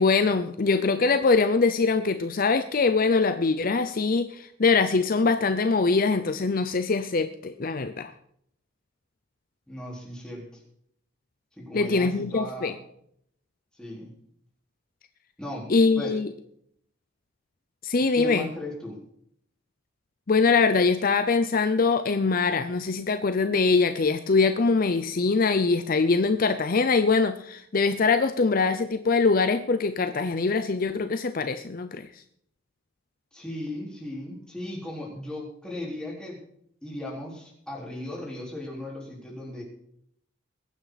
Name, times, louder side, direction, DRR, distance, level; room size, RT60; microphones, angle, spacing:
voice 1, 0.0-8.1 11.7-12.7 15.7-16.3 17.8-18.5 20.3-32.1, left 4 dB, 50° left, 9 dB, 0.6 m, -23 dB
voice 2, 9.7-10.6 11.6-12.8 13.7-14.1 15.4-15.7 15.9-16.1 18.1-19.0 33.3-36.4 36.8-39.6, left 1 dB, 5° left, -4 dB, 4.3 m, -37 dB
21.5 x 9.3 x 4.1 m, 0.70 s
head